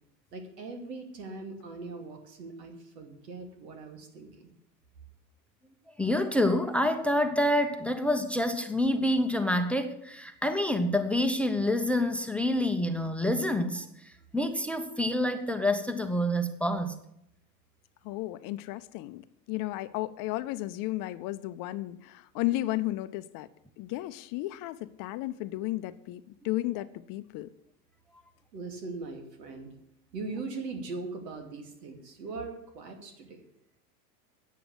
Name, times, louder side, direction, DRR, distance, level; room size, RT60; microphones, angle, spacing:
voice 1, 0.3-4.5 28.5-29.7 30.1-33.4, right 3 dB, 80° right, 2.7 m, -40 dB
voice 2, 6.0-17.0, left 1 dB, 5° left, 0.8 m, -27 dB
voice 3, 18.0-19.2 19.5-23.5 23.8-27.5, left 16 dB, 45° left, 0.7 m, -34 dB
9.3 x 7.9 x 8.3 m
hypercardioid pair, 100°, 48 cm